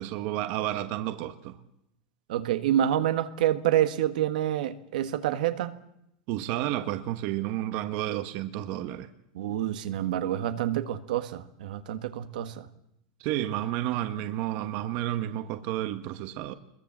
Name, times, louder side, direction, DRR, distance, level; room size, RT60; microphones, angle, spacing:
voice 1, 0.0-1.6 6.3-9.1 13.2-16.5, right 13 dB, 40° right, 1.2 m, -31 dB
voice 2, 2.3-5.7 9.3-12.7, right 11 dB, 75° right, 1.6 m, -27 dB
24.5 x 22.0 x 7.5 m
supercardioid pair, 170°, 4 cm